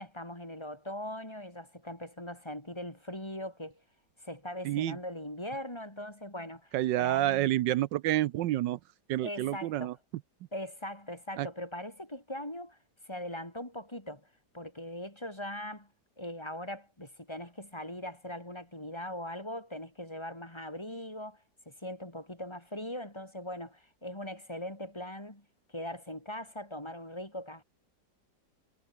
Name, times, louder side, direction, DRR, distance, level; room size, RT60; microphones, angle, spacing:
voice 1, 0.0-3.8 4.2-7.7 9.2-9.9 10.5-12.8 13.1-14.3 14.5-15.9 16.2-25.5 25.7-27.6, left 1 dB, 15° left, 3.4 m, -40 dB
voice 2, 4.6-5.0 6.7-8.8 9.1-10.0 11.4-11.5, right 14 dB, 80° right, 1.3 m, -28 dB
omnidirectional pair, 1.9 m